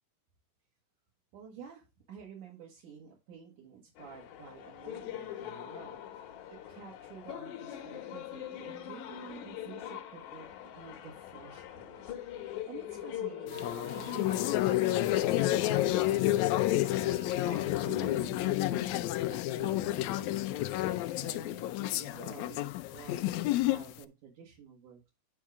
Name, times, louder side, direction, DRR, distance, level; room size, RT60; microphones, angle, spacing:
voice 1, 1.3-17.0 17.4-22.6 22.9-25.1, right 7 dB, 70° right, -3 dB, 3.0 m, -50 dB
sound 1, 4.0-15.5, left 11 dB, 70° left, 2.1 m, -42 dB
sound 2, 13.5-24.0, left 15 dB, 85° left, 1.6 m, -30 dB
Wind instrument woodwind instrument, 13.5-18.6, right 6 dB, 90° right, 2.8 m, -51 dB
10.0 x 3.7 x 4.8 m, 0.25 s
omnidirectional pair, 3.8 m